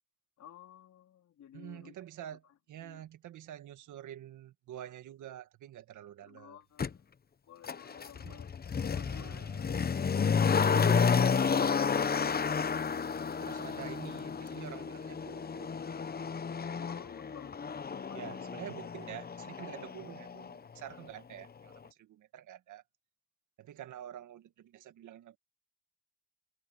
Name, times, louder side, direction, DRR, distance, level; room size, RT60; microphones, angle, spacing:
voice 1, 0.4-1.9 2.8-3.0 6.2-7.1 7.5-8.5 8.9-11.2 16.7-18.6, left 10 dB, 65° left, 3.8 m, -54 dB
voice 2, 1.5-6.6 8.2-8.4 8.9-9.7 10.8-11.3 13.4-15.9 18.1-22.8 23.6-25.4, right 11 dB, 75° right, 1.9 m, -47 dB
Motor vehicle (road), 6.8-6.9 7.6-20.6 20.9-21.0, left 6 dB, 30° left, 1.0 m, -31 dB
cardioid pair, 90°, 30 cm